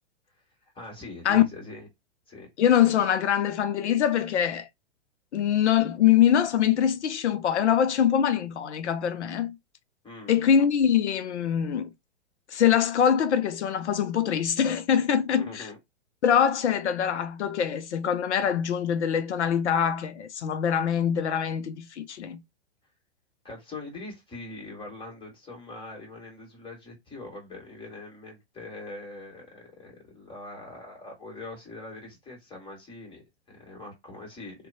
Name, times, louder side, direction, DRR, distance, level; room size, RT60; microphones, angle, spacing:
voice 1, 0.6-1.9 2.3-2.5 10.0-10.4 15.3-15.8 23.4-34.7, left 2 dB, 15° left, 1.4 m, -42 dB
voice 2, 2.6-4.7 5.3-9.6 10.3-11.9 12.5-15.7 16.2-22.4, left 9 dB, 85° left, 0.5 m, -23 dB
2.6 x 2.2 x 2.6 m
hypercardioid pair, 120°, 34 cm